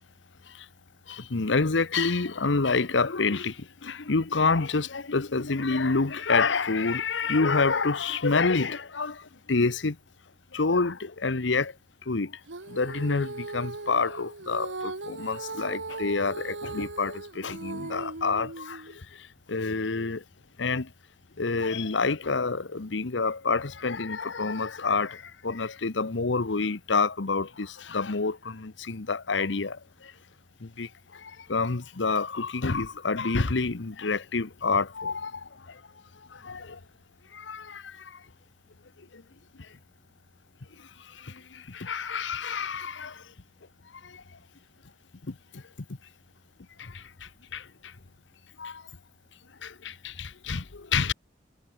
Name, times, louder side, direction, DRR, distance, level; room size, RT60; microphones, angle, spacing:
voice 1, 1.1-10.0 10.5-11.7 12.1-12.4 12.7-20.2 20.6-20.9 21.4-30.1 30.6-35.8 36.3-36.8 37.3-38.2 39.1-39.2 41.1-43.2 44.0-44.2 45.3-45.6 46.8-47.9 48.6-48.8 49.6-51.1, left 4 dB, 80° left, 1.0 m, -28 dB
Female singing, 12.5-19.0, right 3 dB, 85° right, 1.9 m, -38 dB
head